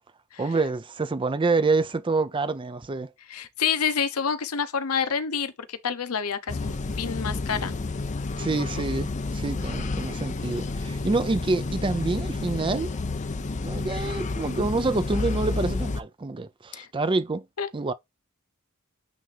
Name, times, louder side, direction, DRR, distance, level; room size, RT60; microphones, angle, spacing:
voice 1, 0.4-3.1 8.4-12.9 13.6-17.4 17.7-17.9, right 3 dB, 25° right, 0.4 m, -27 dB
voice 2, 3.3-7.7 8.6-8.7 16.7-16.9 17.6-17.7, left 6 dB, 85° left, 0.8 m, -28 dB
sound 1, 6.5-16.0, left 3 dB, 35° left, 0.6 m, -30 dB
9.1 x 3.4 x 3.3 m
head